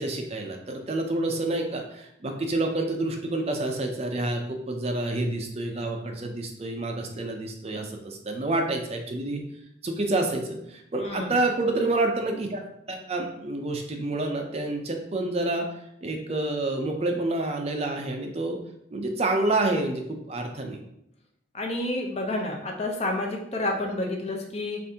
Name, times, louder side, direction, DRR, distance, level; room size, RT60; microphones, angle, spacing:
voice 1, 0.0-9.4 9.8-18.6 18.9-20.8, right 2 dB, 30° right, 3 dB, 0.5 m, -28 dB
voice 2, 11.0-11.4 21.5-24.8, left 2 dB, 35° left, 1 dB, 0.6 m, -29 dB
6.9 x 2.5 x 2.8 m, 0.77 s
head